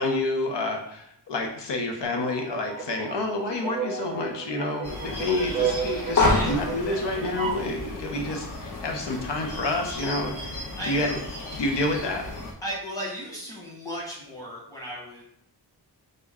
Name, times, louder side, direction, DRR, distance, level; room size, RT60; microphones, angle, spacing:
voice 1, 0.0-11.2 11.5-12.3, left 2 dB, 75° left, 2 dB, 0.8 m, -29 dB
sound 1, 2.0-7.7, right 7 dB, 20° right, 0.5 m, -33 dB
sound 2, 4.8-12.5, left 2 dB, 50° left, 1.0 m, -30 dB
voice 2, 6.3-6.6 10.8-11.2 12.6-15.2, equal, 10° left, -4 dB, 1.2 m, -35 dB
5.0 x 2.2 x 3.5 m, 0.74 s
wide cardioid pair, 165°, 42 cm